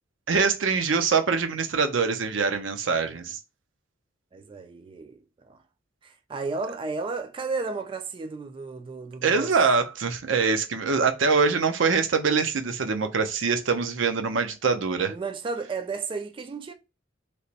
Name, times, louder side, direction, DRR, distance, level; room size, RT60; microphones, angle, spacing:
voice 1, 0.3-3.4 9.2-15.1, right 5 dB, 85° right, 0.6 m, -24 dB
voice 2, 4.3-5.6 6.0-9.5 15.1-16.7, right 4 dB, 25° right, 0.3 m, -33 dB
3.2 x 2.9 x 2.8 m
head